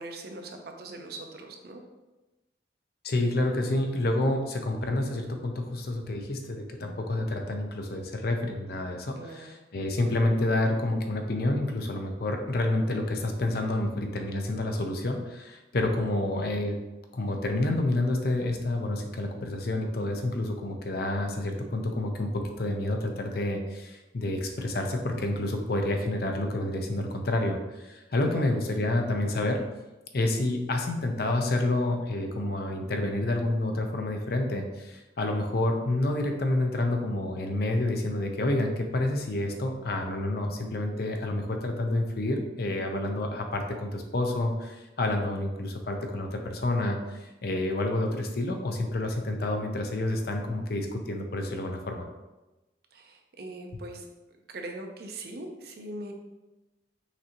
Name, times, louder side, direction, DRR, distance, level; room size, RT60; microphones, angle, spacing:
voice 1, 0.0-1.8 9.2-9.6 28.2-28.5 52.9-54.1 54.5-56.1, right 2 dB, 60° right, 3 dB, 0.6 m, -41 dB
voice 2, 3.0-16.8 17.1-29.6 30.1-52.1, left 1 dB, 55° left, 3 dB, 0.6 m, -29 dB
5.9 x 2.7 x 2.9 m, 1.1 s
head